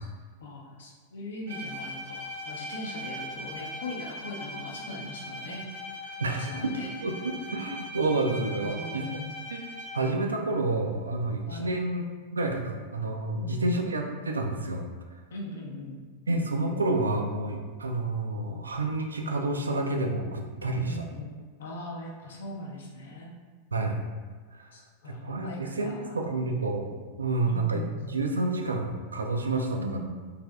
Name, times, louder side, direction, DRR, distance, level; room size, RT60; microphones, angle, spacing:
voice 1, 0.4-5.6 5.9-6.9 8.6-9.3 11.5-11.8 13.4-13.9 15.3-16.0 20.9-23.3 24.7-26.2 27.5-28.1 29.7-30.0, left 1 dB, 65° left, -1 dB, 0.5 m, -40 dB
Bowed string instrument, 1.5-10.2, left 1 dB, 60° right, 0.7 m, -40 dB
voice 2, 6.2-9.0 9.5-9.7 9.9-12.0 12.3-14.9 16.3-21.0 23.7-24.0 24.5-24.7 25.1-30.0, right 2 dB, 75° right, 2 dB, 0.3 m, -29 dB
3.3 x 2.6 x 2.3 m, 1.5 s
figure-of-eight pair, 90°, 0 cm